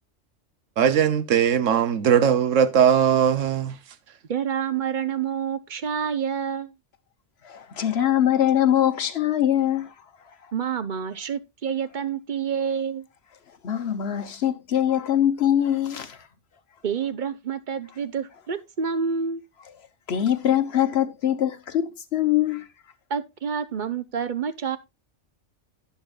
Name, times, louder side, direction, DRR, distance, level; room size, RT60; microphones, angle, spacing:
voice 1, 0.8-3.8, right 8 dB, 85° right, 1.3 m, -19 dB
voice 2, 4.3-6.7 10.5-13.1 16.8-19.4 23.1-24.8, right 7 dB, 45° right, 0.8 m, -28 dB
voice 3, 7.4-9.9 13.6-16.2 20.1-22.6, left 11 dB, 60° left, 1.2 m, -23 dB
11.5 x 9.7 x 2.4 m
omnidirectional pair, 1.3 m